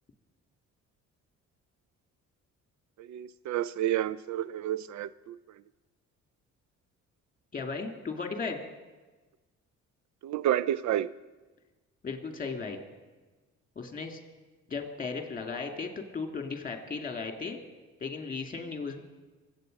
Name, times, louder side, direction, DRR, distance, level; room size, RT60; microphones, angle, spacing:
voice 1, 3.0-5.4 10.2-11.1, right 12 dB, 70° right, 18 dB, 0.5 m, -30 dB
voice 2, 7.5-8.6 12.0-12.8 13.8-14.2 14.7-17.6 18.0-19.0, left 4 dB, 30° left, 4 dB, 2.4 m, -36 dB
23.5 x 8.3 x 5.3 m, 1.2 s
cardioid pair, 90°, 30 cm